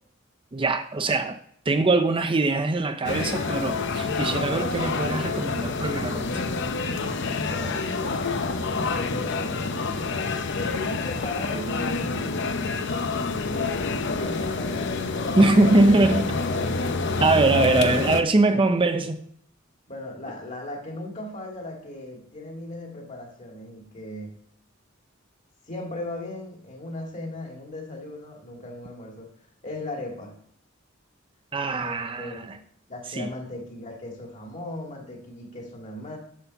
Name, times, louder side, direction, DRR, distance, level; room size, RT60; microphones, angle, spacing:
voice 1, 0.5-1.4 1.7-6.3 15.4-16.2 17.2-19.2 31.5-32.6 33.1-33.3, right 2 dB, 25° right, 0.5 m, -22 dB
sound 1, 3.0-18.2, left 3 dB, 60° left, 0.7 m, -27 dB
voice 2, 7.4-7.9 8.6-9.6 10.6-12.5 13.5-16.1 16.4-16.7 17.5-18.3 19.9-24.3 25.7-29.3 29.6-30.4 31.8-32.5 32.9-36.2, left 1 dB, 35° left, 2.7 m, -37 dB
9.7 x 4.2 x 6.8 m
head